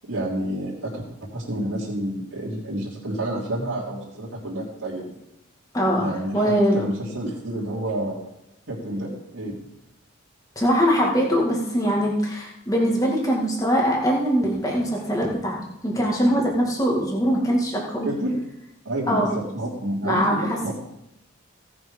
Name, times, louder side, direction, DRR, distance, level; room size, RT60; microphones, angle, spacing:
voice 1, 0.1-5.2 5.9-8.2 8.7-9.5 18.0-18.3 18.8-20.7, right 1 dB, 70° right, -8 dB, 3.1 m, -29 dB
voice 2, 6.3-6.8 10.6-15.6 15.8-18.1 19.1-19.3 20.0-20.7, equal, 15° left, -2 dB, 2.2 m, -22 dB
16.5 x 6.1 x 5.4 m, 0.84 s
head